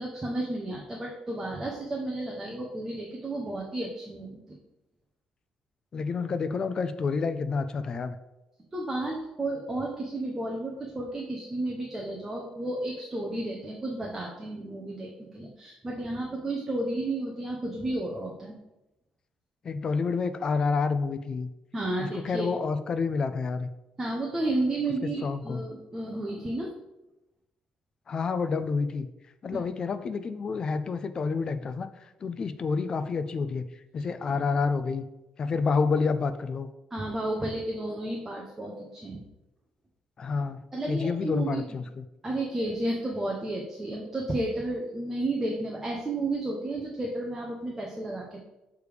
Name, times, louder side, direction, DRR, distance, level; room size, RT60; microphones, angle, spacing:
voice 1, 0.0-4.4 8.7-18.6 21.7-22.5 24.0-26.7 36.9-39.2 40.7-41.8 42.2-48.4, right 2 dB, 15° right, -1 dB, 0.7 m, -32 dB
voice 2, 5.9-8.2 19.6-21.5 22.0-23.7 25.2-25.6 28.1-29.1 29.4-31.9 32.2-33.7 33.9-35.0 35.4-36.7 40.2-40.6 40.9-42.1, left 4 dB, 30° left, 11 dB, 0.4 m, -28 dB
6.6 x 3.4 x 4.8 m, 0.94 s
cardioid pair, 165°, 2 cm